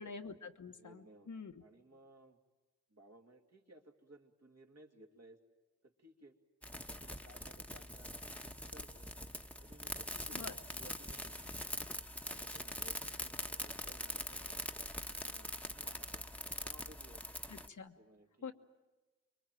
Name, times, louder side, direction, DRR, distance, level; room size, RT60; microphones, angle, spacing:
voice 1, 0.0-1.6 10.3-10.6 17.5-17.9 18.4-18.5, left 5 dB, 90° left, 6 dB, 1.3 m, -47 dB
voice 2, 0.8-1.3 1.6-2.4 2.9-5.4 5.8-6.3 6.9-9.1 9.6-11.8 12.2-14.6 15.1-16.2 16.6-17.2 18.0-18.5, right 1 dB, 60° right, 2 dB, 2.6 m, -60 dB
sound 1, 6.6-17.7, left 1 dB, 5° left, 1.1 m, -43 dB
25.5 x 23.0 x 9.1 m, 1.1 s
wide cardioid pair, 65°, 29 cm